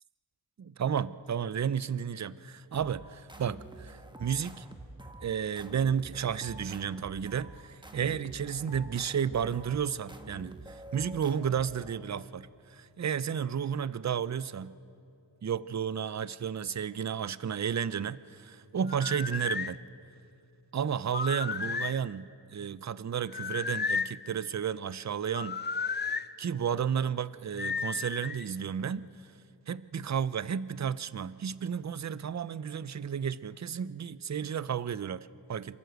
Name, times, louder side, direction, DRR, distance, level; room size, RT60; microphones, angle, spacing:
voice 1, 0.6-4.7 5.2-14.7 15.4-19.8 20.7-25.6 26.4-29.1 29.7-35.8, right 8 dB, 40° right, 17 dB, 0.5 m, -32 dB
sound 1, 2.7-12.2, right 1 dB, 10° right, 1.2 m, -48 dB
sound 2, 18.9-19.7 21.1-22.0 23.3-24.2 25.3-26.3 27.6-28.4, left 5 dB, 25° left, 0.4 m, -33 dB
27.0 x 12.5 x 7.9 m, 2.5 s
wide cardioid pair, 75°, 44 cm